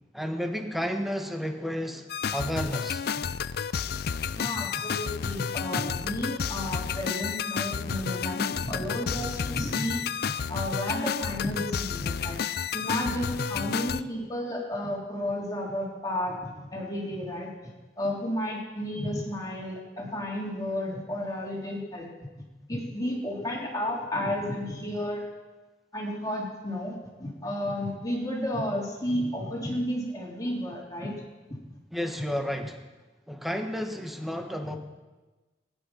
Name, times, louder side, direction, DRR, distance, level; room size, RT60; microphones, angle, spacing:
voice 1, 0.1-3.1 31.9-32.8 33.3-34.8, equal, ahead, 5 dB, 1.3 m, -32 dB
sound 1, 2.1-14.0, left 7 dB, 60° left, 0.4 m, -31 dB
voice 2, 4.4-12.4 12.7-17.7 18.0-22.1 22.7-25.2 25.9-31.1 34.6-34.8, left 1 dB, 20° left, -3 dB, 3.7 m, -32 dB
22.0 x 10.0 x 5.6 m, 1.2 s
head